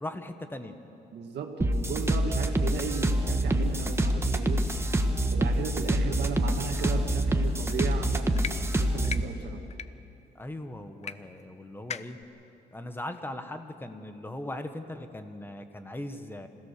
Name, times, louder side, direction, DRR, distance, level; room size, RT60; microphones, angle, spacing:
voice 1, 0.0-0.8 10.3-12.2 12.7-16.5, left 1 dB, 10° left, 7 dB, 1.4 m, -39 dB
voice 2, 1.1-4.6 5.1-9.6, right 6 dB, 80° right, 2 dB, 1.7 m, -36 dB
sound 1, 1.6-9.2, right 1 dB, 15° right, 1.3 m, -26 dB
sound 2, 7.7-7.9 8.4-8.5 9.0-9.2 9.7-9.9 11.0-11.1 11.4-11.5 11.9-12.2, left 7 dB, 40° left, 0.6 m, -36 dB
26.5 x 16.5 x 6.8 m, 2.8 s
cardioid pair, 110°, 17 cm